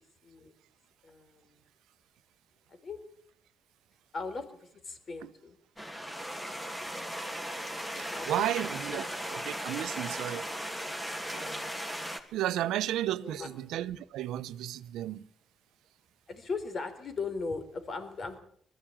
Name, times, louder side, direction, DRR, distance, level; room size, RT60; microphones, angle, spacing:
voice 1, 1.0-1.6 2.7-3.0 4.1-4.5 4.8-5.6 8.0-8.5 8.9-9.0 13.2-13.5 16.3-18.4, left 4 dB, 45° left, 4.2 m, -38 dB
sound 1, 5.8-12.2, equal, 10° left, 3.2 m, -37 dB
voice 2, 7.9-10.4 11.3-11.6 12.3-15.2, right 13 dB, 85° right, 0.9 m, -33 dB
20.5 x 14.5 x 8.9 m
cardioid pair, 90°, 0 cm